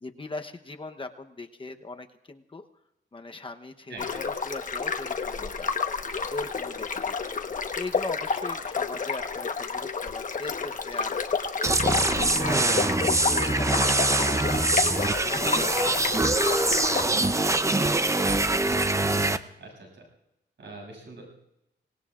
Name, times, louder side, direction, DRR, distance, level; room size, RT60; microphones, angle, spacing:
voice 1, 0.0-2.7 3.1-5.7 6.3-7.2 7.7-11.2 11.9-15.9 16.6-18.4, left 3 dB, 30° left, 6 dB, 0.9 m, -40 dB
voice 2, 3.9-4.2 12.3-12.8 19.6-20.0 20.6-21.3, right 2 dB, 85° right, 0 dB, 7.3 m, -44 dB
sound 1, 4.0-17.0, left 5 dB, 45° left, 1.2 m, -30 dB
sound 2, 11.6-19.4, right 2 dB, 15° right, 0.6 m, -24 dB
26.5 x 19.0 x 2.5 m, 0.89 s
wide cardioid pair, 105°, 18 cm